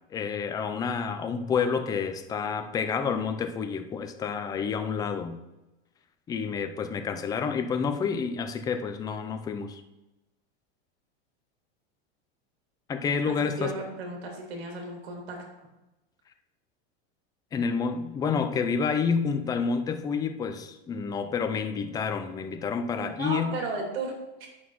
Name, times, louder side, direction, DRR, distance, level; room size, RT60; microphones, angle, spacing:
voice 1, 0.1-5.4 6.3-9.8 12.9-13.7 17.5-23.6, left 6 dB, 15° left, 7 dB, 0.3 m, -29 dB
voice 2, 2.9-3.3 13.2-15.4 23.0-24.2, right 3 dB, 80° right, 1 dB, 2.4 m, -35 dB
9.0 x 6.1 x 3.0 m, 1.0 s
supercardioid pair, 140°, 31 cm